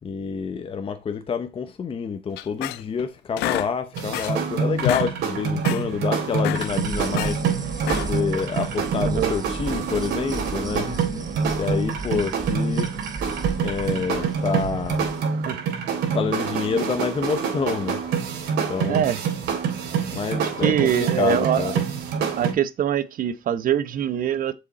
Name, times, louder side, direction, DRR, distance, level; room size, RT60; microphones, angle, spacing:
voice 1, 0.0-7.7 8.0-13.2 13.6-15.1 16.1-18.3 18.7-19.0 19.6-21.8, left 6 dB, 35° left, 0.8 m, -28 dB
sound 1, 2.4-3.0 3.4-4.5 4.7-5.1 5.5-5.9 6.3-7.4 7.8-8.3, left 17 dB, 85° left, 0.4 m, -29 dB
sound 2, 3.9-22.5, right 6 dB, 80° right, 2.7 m, -26 dB
sound 3, 6.5-15.1, right 4 dB, 20° right, 1.0 m, -34 dB
voice 2, 9.0-9.3 15.4-15.7 18.9-19.2 20.2-21.7 22.4-24.5, right 10 dB, 55° right, 0.9 m, -24 dB
6.9 x 4.9 x 4.1 m
cardioid pair, 110°, 17 cm